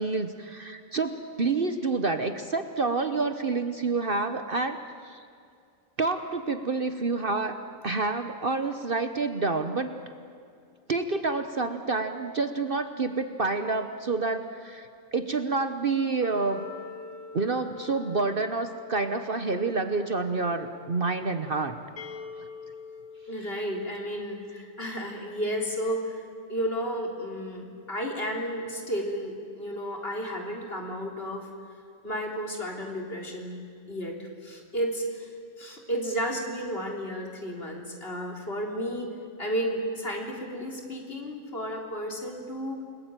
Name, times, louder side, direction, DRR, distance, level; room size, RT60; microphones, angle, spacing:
voice 1, 0.0-4.8 5.0-5.2 6.0-7.6 7.8-10.0 10.9-16.7 17.3-21.8, right 3 dB, 45° right, 9 dB, 1.2 m, -28 dB
Wind instrument woodwind instrument, 16.2-21.3, left 4 dB, 30° left, 3.3 m, -45 dB
sound 1, 22.0-25.7, left 5 dB, 85° left, 2.0 m, -46 dB
voice 2, 23.3-26.2 26.5-31.5 32.0-33.6 33.9-35.3 35.6-39.1 39.4-42.8, equal, 45° left, 1 dB, 3.9 m, -32 dB
30.0 x 20.0 x 9.1 m, 2.3 s
omnidirectional pair, 1.4 m